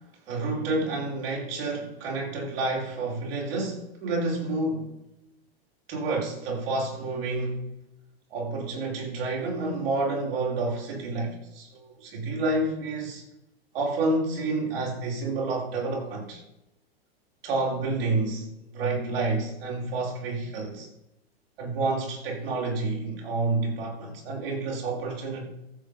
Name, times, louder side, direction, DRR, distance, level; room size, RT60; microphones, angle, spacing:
voice 1, 0.3-4.9 5.9-7.6 8.3-13.2 13.7-16.4 17.4-18.5 18.7-20.9 21.6-25.5, right 3 dB, 70° right, 5.4 m, -29 dB
14.5 x 7.3 x 5.4 m
hypercardioid pair, 120°, 31 cm